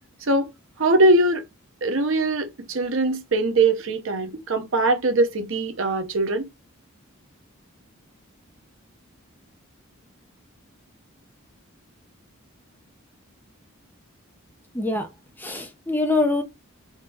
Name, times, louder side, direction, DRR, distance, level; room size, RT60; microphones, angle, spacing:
voice 1, 0.8-1.5 1.8-6.5, right 2 dB, 60° right, 0.8 m, -21 dB
voice 2, 14.7-15.1 15.4-16.4, left 2 dB, 10° left, 0.7 m, -24 dB
3.7 x 3.2 x 2.8 m
head